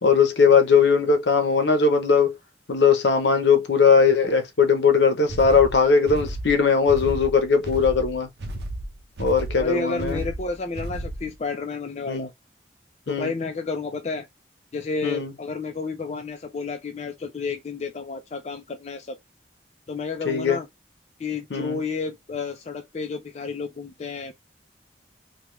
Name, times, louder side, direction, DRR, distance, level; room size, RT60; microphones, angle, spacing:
voice 1, 0.0-2.4 2.7-8.3 9.2-10.2 12.1-12.3 13.1-13.3 15.0-15.3 20.3-20.6 21.5-21.8, left 5 dB, 80° left, 0.7 m, -19 dB
sound 1, 5.3-11.4, right 1 dB, 70° right, 0.7 m, -33 dB
voice 2, 9.6-12.3 13.1-14.3 14.7-19.2 19.9-20.7 21.2-24.3, left 4 dB, 40° left, 0.4 m, -31 dB
3.1 x 2.3 x 3.1 m
head